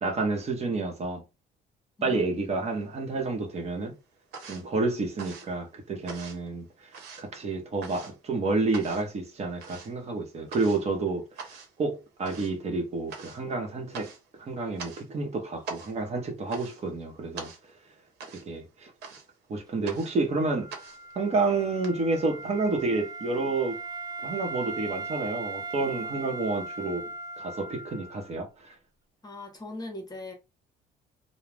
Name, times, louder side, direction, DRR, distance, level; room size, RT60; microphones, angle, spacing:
voice 1, 0.0-1.2 2.0-3.9 4.4-6.9 7.2-11.5 11.8-14.1 14.4-17.5 18.5-18.9 19.5-20.7 21.2-23.8 24.2-27.1 27.4-28.8, right 3 dB, 40° right, 0.8 m, -29 dB
sound 1, 2.5-3.3 3.6-21.9, right 4 dB, 75° right, 0.9 m, -45 dB
Wind instrument woodwind instrument, 20.6-28.4, right 3 dB, 20° right, 0.5 m, -39 dB
voice 2, 29.2-30.3, left 2 dB, 25° left, 0.7 m, -39 dB
2.4 x 2.0 x 3.2 m
cardioid pair, 110°, 17 cm